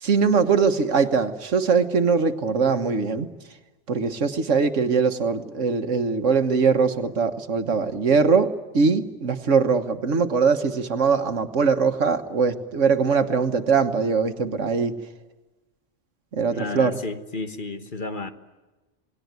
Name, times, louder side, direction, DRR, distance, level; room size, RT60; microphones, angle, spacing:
voice 1, 0.0-3.3 3.9-15.0 16.3-17.0, right 5 dB, 85° right, 8 dB, 1.7 m, -21 dB
voice 2, 16.5-18.3, left 3 dB, 45° left, 8 dB, 1.4 m, -32 dB
28.0 x 19.5 x 9.5 m, 1.2 s
omnidirectional pair, 1.2 m